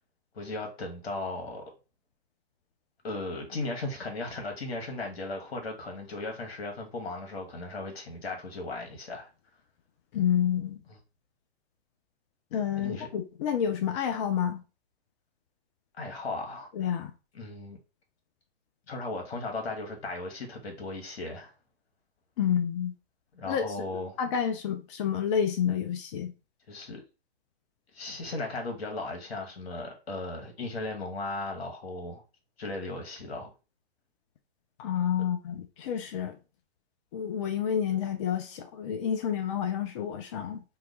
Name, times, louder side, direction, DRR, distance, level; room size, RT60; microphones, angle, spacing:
voice 1, 0.3-1.6 3.0-9.3 12.8-13.1 16.0-16.7 17.3-17.8 18.9-21.5 23.3-24.2 26.7-27.0 27.9-32.2 32.6-33.5, left 2 dB, 70° left, 1.4 m, -36 dB
voice 2, 10.1-10.8 12.5-14.6 16.7-17.1 22.4-22.9 23.4-23.7 24.2-26.3 34.8-36.4 37.1-40.6, left 8 dB, 30° left, 0.4 m, -29 dB
2.9 x 2.3 x 3.8 m
hypercardioid pair, 125°, 32 cm